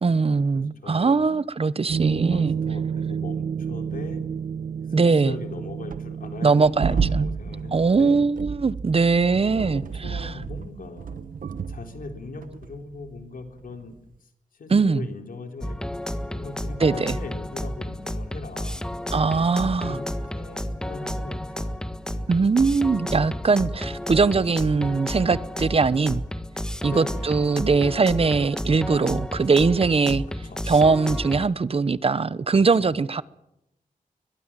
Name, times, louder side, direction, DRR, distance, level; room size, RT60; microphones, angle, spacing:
voice 1, 0.0-2.5 4.9-5.3 6.4-7.3 7.7-9.8 10.1-10.3 14.7-15.1 16.8-17.2 19.1-20.0 22.3-26.2 26.8-30.2 30.7-33.2, right 4 dB, 45° right, 0.9 m, -21 dB
voice 2, 0.5-1.3 2.3-4.2 4.9-8.3 9.5-11.2 11.7-13.9 14.2-16.0 16.3-18.9 19.3-19.5 19.8-20.1 20.3-22.3 26.8-27.3 30.3-30.6 32.8-33.0, left 3 dB, 90° left, 3.8 m, -40 dB
sound 1, 1.9-13.4 13.7-13.9, right 6 dB, 80° right, 1.2 m, -30 dB
sound 2, 15.6-31.5, equal, 5° left, 1.5 m, -31 dB
23.5 x 21.5 x 7.5 m
wide cardioid pair, 110°, 14 cm